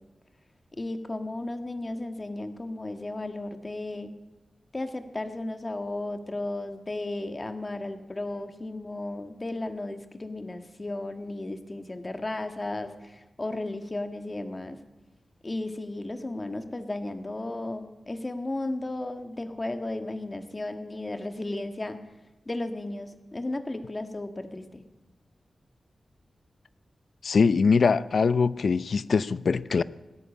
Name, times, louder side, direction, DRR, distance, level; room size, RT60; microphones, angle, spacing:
voice 1, 0.8-4.1 4.7-14.8 15.4-22.0 22.4-24.8, left 2 dB, 25° left, 1.6 m, -34 dB
voice 2, 27.2-29.8, left 5 dB, 60° left, 0.6 m, -22 dB
19.5 x 16.5 x 8.6 m
wide cardioid pair, 175°, 0 cm